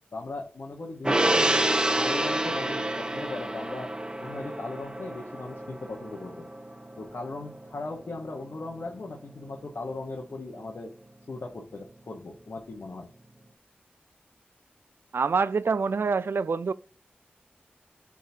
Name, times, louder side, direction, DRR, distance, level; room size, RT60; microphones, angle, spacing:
voice 1, 0.1-1.7 2.0-3.9 4.2-6.5 7.0-10.9 11.3-13.1, left 2 dB, 70° left, 1.1 m, -38 dB
Gong, 1.0-7.7 8.0-8.1, right 1 dB, 20° right, 0.8 m, -28 dB
voice 2, 15.1-16.7, right 5 dB, 75° right, 0.3 m, -26 dB
10.5 x 3.6 x 2.7 m
cardioid pair, 40°, 4 cm